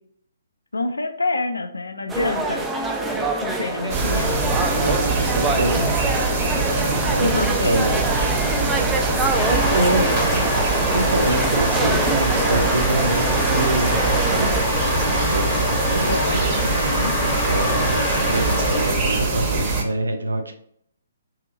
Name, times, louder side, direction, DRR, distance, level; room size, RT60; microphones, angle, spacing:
voice 1, 0.7-2.7 3.4-4.4 7.2-7.9 9.5-10.5 16.0-17.1, left 3 dB, 80° left, 8 dB, 0.4 m, -27 dB
sound 1, 2.1-14.6, right 2 dB, 10° right, 0.3 m, -25 dB
sound 2, 3.9-19.8, right 3 dB, 30° right, 0.7 m, -23 dB
voice 2, 4.8-5.9 6.8-7.4 7.6-8.3 9.7-10.0 10.9-14.5 15.2-16.5 17.2-20.5, right 2 dB, 80° right, 6 dB, 0.5 m, -26 dB
sound 3, 9.3-18.9, left 1 dB, 10° left, 0.8 m, -25 dB
2.8 x 2.7 x 2.5 m, 0.68 s
figure-of-eight pair, 135°, 0 cm